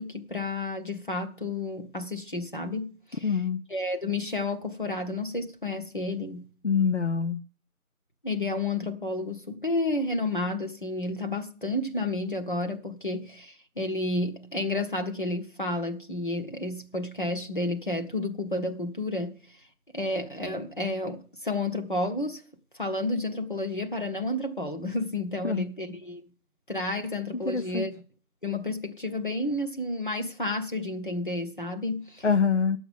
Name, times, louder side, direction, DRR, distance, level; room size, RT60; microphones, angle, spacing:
voice 1, 0.0-3.3 3.7-6.5 8.2-19.4 19.9-22.4 22.8-26.2 26.7-27.9 28.4-32.3, left 2 dB, 35° left, 1.2 m, -31 dB
voice 2, 3.2-3.6 6.6-7.4 25.4-25.7 27.3-27.9 32.2-32.8, left 6 dB, 50° left, 0.6 m, -25 dB
11.5 x 7.9 x 6.9 m
figure-of-eight pair, 175°, 44 cm